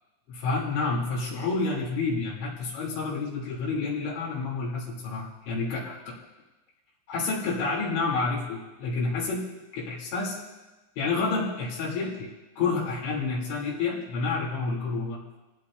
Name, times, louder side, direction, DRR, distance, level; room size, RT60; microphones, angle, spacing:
voice 1, 0.3-6.2 7.1-10.4 11.0-12.3 12.6-15.2, left 4 dB, 70° left, -5 dB, 5.4 m, -29 dB
27.0 x 16.5 x 2.6 m, 1.1 s
omnidirectional pair, 5.4 m